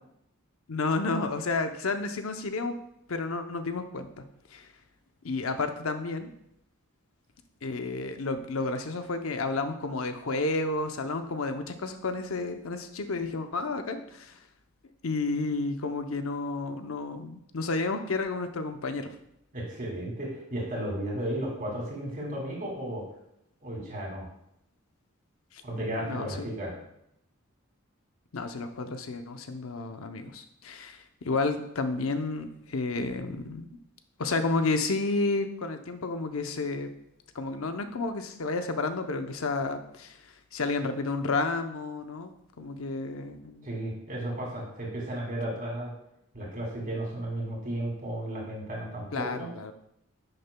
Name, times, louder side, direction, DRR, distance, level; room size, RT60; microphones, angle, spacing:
voice 1, 0.7-2.7 3.1-4.2 4.5-4.7 5.2-6.3 7.6-14.4 15.0-19.1 26.0-26.7 28.3-33.7 34.2-36.9 37.3-40.2 40.5-43.7 49.1-49.7, left 3 dB, 80° left, 7 dB, 0.7 m, -31 dB
voice 2, 19.5-23.0 23.6-24.3 25.6-26.7 43.6-45.9 46.3-49.5, right 1 dB, 40° right, -2 dB, 2.5 m, -34 dB
10.0 x 6.5 x 2.3 m, 0.78 s
head